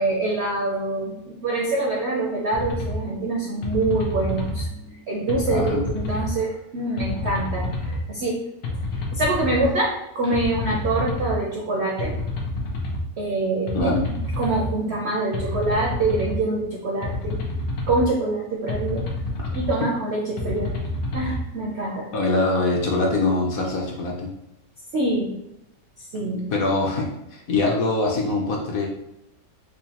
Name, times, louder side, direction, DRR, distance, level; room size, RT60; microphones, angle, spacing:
voice 1, 0.0-8.4 8.9-12.1 13.2-13.9 14.4-17.4 17.9-19.0 19.5-20.7 21.1-22.1 24.9-25.3 26.1-26.5, right 2 dB, 70° right, -2 dB, 0.6 m, -25 dB
sound 1, 2.5-3.0 3.6-4.7 5.3-6.3 7.0-8.0 8.6-9.7 10.3-11.4 12.0-13.0 13.7-14.7 15.3-16.4 17.0-18.1 18.7-19.7 20.4-21.4, left 2 dB, 90° left, 1.4 m, -28 dB
voice 2, 5.5-5.8 13.7-14.0 22.1-24.3 26.5-28.9, left 2 dB, 65° left, -1 dB, 1.0 m, -23 dB
4.9 x 2.2 x 2.8 m, 0.86 s
omnidirectional pair, 1.8 m